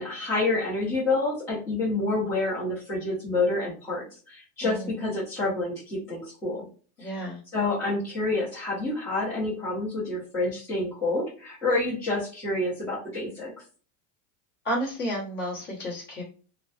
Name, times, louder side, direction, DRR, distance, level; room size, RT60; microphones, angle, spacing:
voice 1, 0.0-6.7 7.5-13.5, left 2 dB, 5° left, -11 dB, 0.4 m, -28 dB
voice 2, 4.6-4.9 7.0-7.4 14.6-16.2, equal, 25° left, -3 dB, 0.9 m, -31 dB
2.5 x 2.2 x 2.3 m, 0.39 s
supercardioid pair, 165°, 45 cm